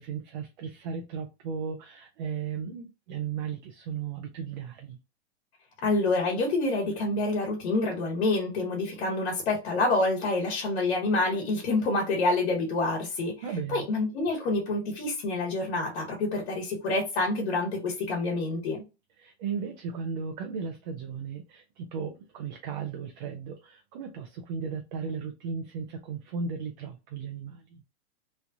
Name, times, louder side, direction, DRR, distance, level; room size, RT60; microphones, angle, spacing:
voice 1, 0.0-5.0 13.4-13.9 19.2-27.8, right 6 dB, 45° right, 0.5 m, -36 dB
voice 2, 5.8-13.3 13.7-18.8, left 2 dB, 70° left, 1.3 m, -27 dB
3.1 x 2.4 x 2.7 m
supercardioid pair, 155°, 33 cm